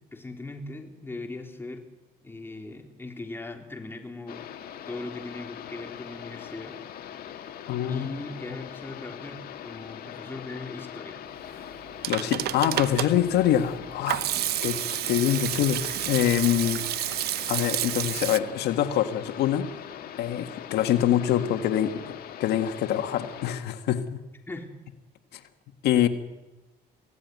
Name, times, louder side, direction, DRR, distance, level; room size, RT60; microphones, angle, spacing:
voice 1, 0.1-1.8 2.2-4.4 4.9-6.8 7.9-11.2 14.5-14.7 24.5-24.7, left 2 dB, 15° left, 3 dB, 3.7 m, -39 dB
Vic Falls, 4.3-23.5, left 9 dB, 65° left, 2.1 m, -41 dB
voice 2, 7.7-8.1 12.1-14.2 14.6-14.7 15.1-16.8 17.5-19.7 20.2-22.0 22.4-24.2 25.3-25.4 25.8-26.1, left 11 dB, 80° left, 8 dB, 1.7 m, -25 dB
Hands / Sink (filling or washing), 11.7-18.4, right 14 dB, 70° right, 0.8 m, -30 dB
25.0 x 16.5 x 9.5 m, 1.0 s
cardioid pair, 110°, 17 cm